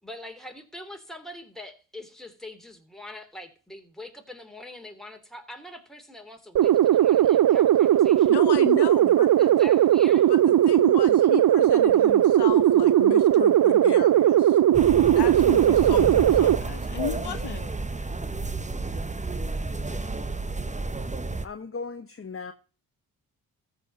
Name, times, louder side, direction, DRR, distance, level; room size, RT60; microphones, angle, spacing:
voice 1, 0.0-8.4 9.4-10.3, left 1 dB, ahead, 3.1 m, -43 dB
sound 1, 6.6-16.6, right 12 dB, 50° right, 0.5 m, -18 dB
voice 2, 7.6-8.3 12.4-12.5 12.9-13.2 20.2-20.3 21.4-22.5, left 4 dB, 30° left, 1.1 m, -40 dB
voice 3, 8.3-9.5 10.3-14.6 15.0-17.7, left 8 dB, 65° left, 1.1 m, -34 dB
sound 2, 14.7-21.5, right 3 dB, 15° right, 1.1 m, -31 dB
14.0 x 5.5 x 5.2 m
supercardioid pair, 45°, 43 cm